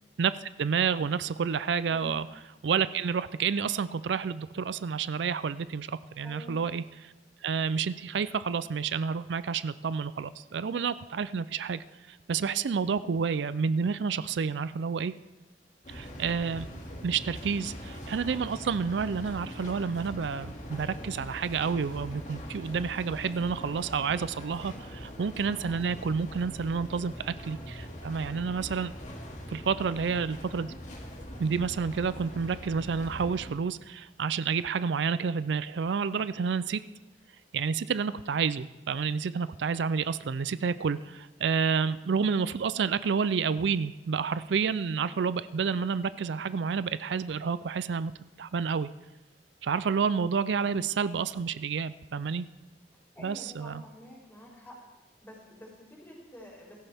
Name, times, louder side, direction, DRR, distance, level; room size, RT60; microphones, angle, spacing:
voice 1, 0.2-2.2 2.6-7.1 7.4-15.1 15.9-16.7 17.0-28.9 29.5-30.7 31.4-36.8 37.5-48.1 48.4-48.9 49.6-52.5 53.2-53.8, right 6 dB, 85° right, 15 dB, 0.4 m, -29 dB
voice 2, 1.9-2.3 6.2-6.6 53.1-54.8 55.2-56.9, left 1 dB, 15° left, -7 dB, 4.5 m, -48 dB
sound 1, 15.8-33.5, equal, 45° left, 2.3 m, -42 dB
17.0 x 14.0 x 3.5 m, 1.1 s
head